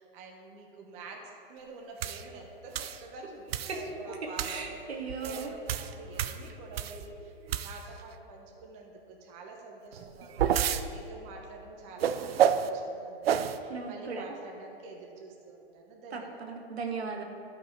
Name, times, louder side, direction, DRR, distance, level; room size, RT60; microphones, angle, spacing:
voice 1, 0.0-7.3 7.6-16.4, right 3 dB, 20° right, 0 dB, 0.9 m, -47 dB
sound 1, 2.0-2.2 2.7-3.0 3.5-3.8 4.4-4.6 5.1-7.1 7.5-8.0 9.9-10.8 12.0-12.7 13.2-13.6, right 9 dB, 70° right, 0.6 m, -29 dB
voice 2, 4.4-5.5 13.7-14.2 16.1-17.2, right 4 dB, 90° right, 2 dB, 1.6 m, -37 dB
12.0 x 5.5 x 4.4 m, 2.7 s
hypercardioid pair, 155°, 31 cm